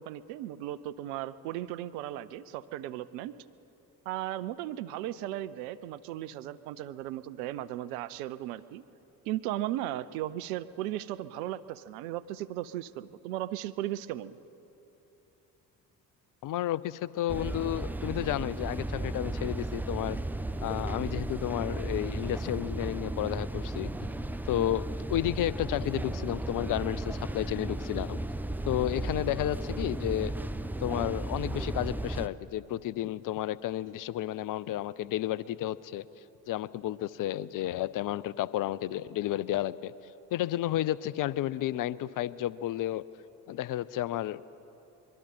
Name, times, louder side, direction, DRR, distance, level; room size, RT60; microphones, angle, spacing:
voice 1, 0.0-3.3 4.1-8.8 9.2-14.4, right 13 dB, 65° right, 14 dB, 0.8 m, -36 dB
voice 2, 16.4-20.2 20.6-23.9 24.5-24.8 25.1-28.2 28.7-30.3 30.8-36.0 36.5-39.9 40.3-43.0 43.5-44.4, left 13 dB, 40° left, 19 dB, 0.6 m, -32 dB
sound 1, 17.3-32.3, right 1 dB, 5° right, 0.6 m, -35 dB
23.5 x 22.0 x 5.6 m, 2.9 s
figure-of-eight pair, 50°, 49 cm